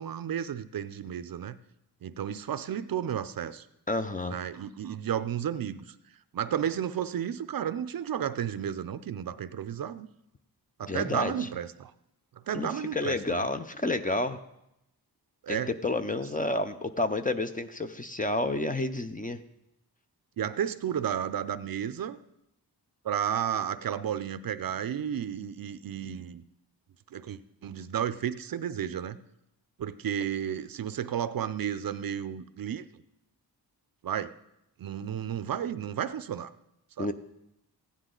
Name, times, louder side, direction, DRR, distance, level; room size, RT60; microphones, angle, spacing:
voice 1, 0.0-1.6 2.0-3.7 4.3-6.0 6.3-10.1 10.8-11.9 12.5-13.4 15.4-15.7 20.4-22.2 23.0-26.4 27.1-29.2 29.8-32.8 34.0-34.3 34.8-36.5 37.0-37.1, right 9 dB, 60° right, 14 dB, 0.5 m, -32 dB
voice 2, 3.9-4.4 10.9-11.5 12.5-14.4 15.5-19.4 37.0-37.1, left 2 dB, 20° left, 9 dB, 0.5 m, -30 dB
15.5 x 9.8 x 3.8 m, 0.83 s
wide cardioid pair, 105°, 40 cm